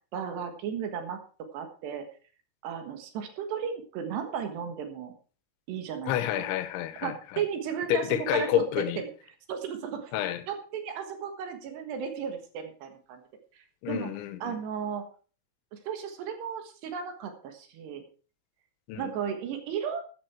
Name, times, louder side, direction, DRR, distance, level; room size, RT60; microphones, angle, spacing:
voice 1, 0.1-1.2 1.5-2.0 2.6-5.1 5.7-6.1 7.0-9.1 9.5-10.1 10.5-13.2 13.5-14.1 14.4-15.1 15.7-18.0 19.0-20.0, right 7 dB, 70° right, 3.5 m, -34 dB
voice 2, 6.1-7.4 7.9-9.0 10.1-10.4 13.8-14.6 18.9-19.1, left 12 dB, 85° left, 3.3 m, -29 dB
14.0 x 8.6 x 4.7 m
omnidirectional pair, 5.3 m